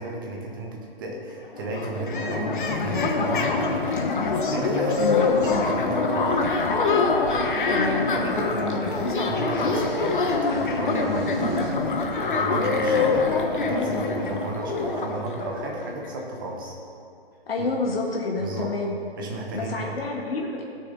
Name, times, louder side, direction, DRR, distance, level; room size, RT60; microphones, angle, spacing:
voice 1, 0.0-6.6 7.7-16.7 18.4-18.7 19.2-19.9, right 2 dB, 20° right, -1 dB, 1.1 m, -34 dB
sound 1, 1.3-1.4 1.5-16.1, left 3 dB, 55° left, 1.2 m, -24 dB
sound 2, 4.0-11.7, right 3 dB, ahead, 0.6 m, -42 dB
voice 2, 7.7-8.1 17.5-19.0 19.5-20.6, left 3 dB, 70° left, -1 dB, 1.8 m, -28 dB
16.0 x 6.8 x 3.9 m, 2.4 s
hypercardioid pair, 170°, 31 cm